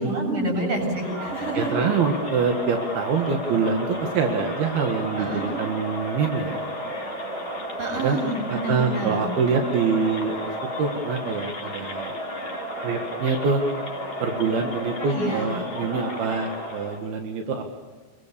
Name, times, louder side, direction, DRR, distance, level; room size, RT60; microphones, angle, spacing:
voice 1, 0.0-1.7 5.2-5.5 7.8-9.2 15.0-15.5, right 1 dB, 35° right, 1 dB, 8.1 m, -28 dB
Crowd, 0.8-17.1, equal, 25° left, 5.5 m, -33 dB
voice 2, 1.5-6.6 8.0-8.2 8.5-10.4 10.8-12.1 12.8-13.6 14.2-17.6, right 5 dB, 85° right, 3 dB, 3.8 m, -25 dB
27.0 x 23.0 x 6.9 m, 1.4 s
omnidirectional pair, 4.3 m